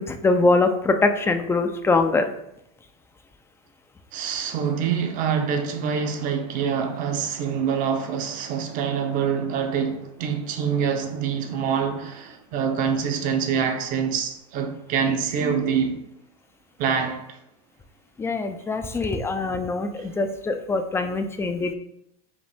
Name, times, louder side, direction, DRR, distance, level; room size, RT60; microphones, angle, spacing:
voice 1, 0.0-2.3 18.2-21.7, left 3 dB, 15° left, 0.4 m, -23 dB
voice 2, 4.1-16.0 16.8-17.4 20.0-20.1, right 7 dB, 45° right, 0.8 m, -25 dB
5.0 x 2.6 x 3.4 m
hypercardioid pair, 105°, 19 cm